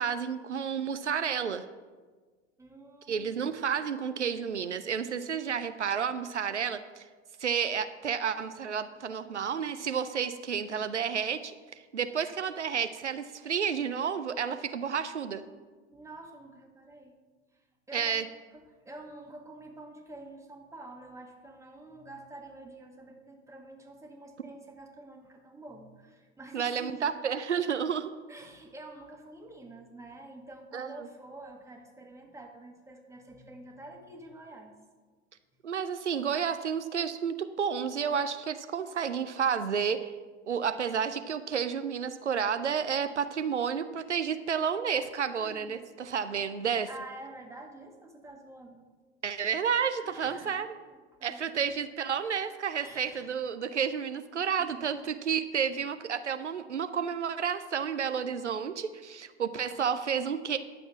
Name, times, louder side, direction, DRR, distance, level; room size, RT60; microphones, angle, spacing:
voice 1, 0.0-1.6 3.1-7.1 7.4-15.4 17.9-18.2 26.5-28.1 30.7-30.9 35.6-40.1 40.4-46.9 49.2-50.7 51.2-60.6, right 7 dB, 90° right, 10 dB, 0.6 m, -31 dB
voice 2, 2.6-3.5 15.9-17.2 17.5-18.3 18.5-27.1 28.3-34.7 45.3-45.8 46.9-48.8 50.0-51.7 52.8-53.3 54.6-55.0 55.6-55.9, right 2 dB, 10° right, 2 dB, 1.8 m, -48 dB
11.0 x 7.1 x 5.8 m, 1.4 s
figure-of-eight pair, 80°, 34 cm